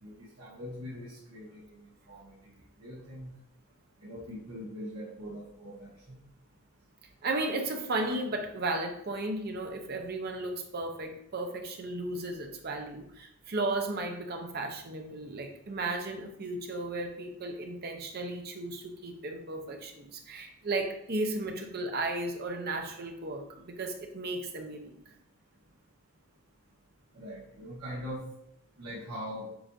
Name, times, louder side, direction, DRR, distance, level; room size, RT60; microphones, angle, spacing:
voice 1, 0.0-2.5 2.8-3.3 4.0-6.2 27.1-28.3 28.8-29.5, equal, 70° right, -8 dB, 1.3 m, -42 dB
voice 2, 7.2-24.9, right 2 dB, 45° right, 4 dB, 0.6 m, -35 dB
7.6 x 2.6 x 2.6 m, 0.75 s
head